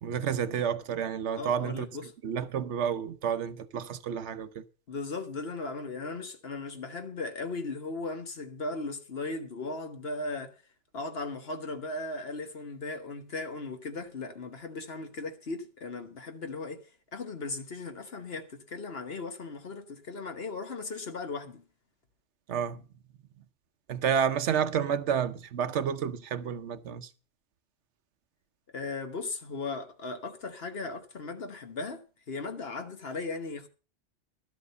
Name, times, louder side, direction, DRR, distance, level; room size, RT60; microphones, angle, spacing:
voice 1, 0.0-1.9 2.2-4.6 22.5-22.8 23.9-27.1, right 8 dB, 80° right, 1.1 m, -30 dB
voice 2, 1.4-2.1 4.9-10.5 10.9-16.8 17.1-21.6 28.7-33.7, left 3 dB, 60° left, 1.4 m, -37 dB
12.5 x 7.6 x 6.7 m
omnidirectional pair, 1.2 m